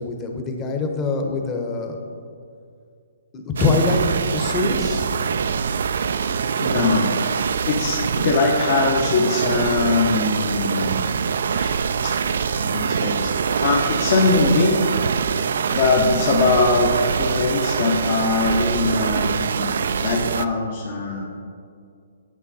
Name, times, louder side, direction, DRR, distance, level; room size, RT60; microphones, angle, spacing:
voice 1, 0.0-2.0 3.3-4.1 4.3-5.1, left 4 dB, 20° left, 3 dB, 1.0 m, -24 dB
sound 1, 3.6-20.5, right 6 dB, 70° right, 0.3 m, -24 dB
voice 2, 6.6-7.1 7.7-11.1 11.4-11.8 12.0-12.1 12.6-13.3 13.6-14.8 15.7-21.3, left 3 dB, 50° left, -3 dB, 1.1 m, -21 dB
8.7 x 8.2 x 4.3 m, 2.3 s
hypercardioid pair, 145°, 0 cm